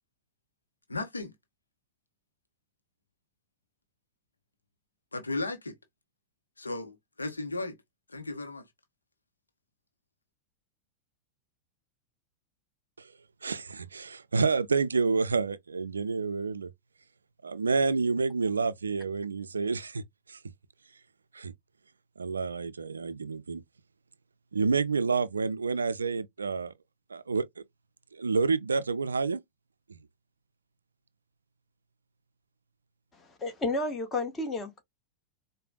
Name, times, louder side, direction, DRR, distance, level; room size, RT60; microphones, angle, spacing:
voice 1, 0.9-1.3 5.1-5.7 6.6-7.8 8.1-8.7, left 2 dB, 80° left, 0.8 m, -35 dB
voice 2, 13.4-16.7 17.4-20.0 20.3-20.4 21.3-21.5 22.2-23.6 24.5-26.7 27.1-27.5 28.1-29.4 29.9-30.0, right 4 dB, 75° right, 0.3 m, -29 dB
voice 3, 33.1-34.8, left 2 dB, 20° left, 1.2 m, -32 dB
4.8 x 2.2 x 2.3 m
figure-of-eight pair, 90°, 0 cm